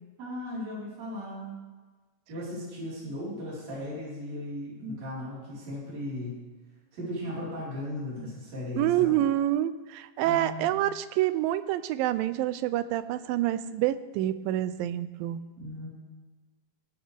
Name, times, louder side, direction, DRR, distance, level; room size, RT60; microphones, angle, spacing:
voice 1, 0.2-1.6 2.3-6.4 6.9-9.2 10.2-10.7 15.6-15.9, left 1 dB, 50° right, -9 dB, 5.5 m, -37 dB
voice 2, 8.8-15.4, right 13 dB, 90° right, 13 dB, 2.3 m, -27 dB
17.5 x 9.0 x 3.5 m, 1.3 s
omnidirectional pair, 4.0 m